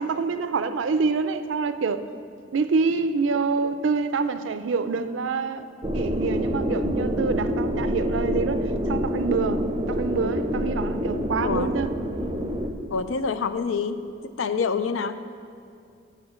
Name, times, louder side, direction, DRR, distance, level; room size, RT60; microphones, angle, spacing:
voice 1, 0.0-2.0 2.5-5.7 5.9-11.9, right 4 dB, 70° right, 11 dB, 0.4 m, -26 dB
sound 1, 5.8-12.7, equal, 25° right, 0.5 m, -27 dB
voice 2, 12.9-14.0 14.4-15.2, left 5 dB, 85° left, 11 dB, 0.4 m, -26 dB
8.5 x 5.0 x 7.4 m, 2.4 s
head